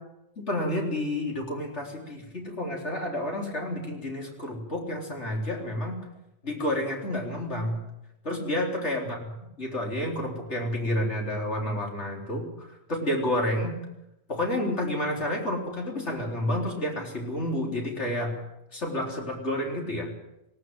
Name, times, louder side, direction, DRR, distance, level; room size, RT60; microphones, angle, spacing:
voice 1, 0.4-6.0 6.4-7.8 8.2-9.2 9.6-13.8 14.3-18.3 18.7-20.1, left 1 dB, 75° left, 0 dB, 4.3 m, -30 dB
19.5 x 18.0 x 7.8 m, 0.88 s
omnidirectional pair, 1.2 m